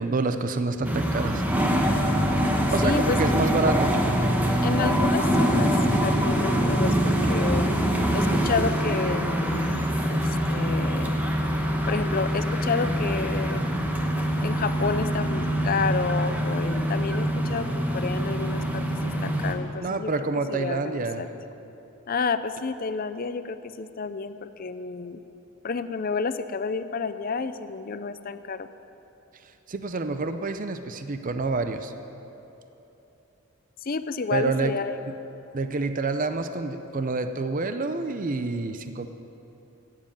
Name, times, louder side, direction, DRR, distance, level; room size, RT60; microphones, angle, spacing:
voice 1, 0.0-1.4 2.7-4.0 19.8-21.3 29.7-31.9 34.3-34.7 35.5-39.1, right 3 dB, 35° right, 9 dB, 0.5 m, -27 dB
sound 1, 0.8-15.9, equal, 10° left, 1.3 m, -41 dB
sound 2, 0.8-19.5, equal, 10° right, 1.0 m, -24 dB
voice 2, 2.8-3.2 4.6-7.7 8.1-11.3 11.9-13.6 14.4-20.1 20.5-21.3 22.1-25.2 25.6-28.7 33.8-35.0, left 4 dB, 40° left, 11 dB, 0.5 m, -30 dB
sound 3, 4.0-16.9, equal, 65° right, 3.3 m, -47 dB
16.0 x 7.5 x 9.0 m, 3.0 s
head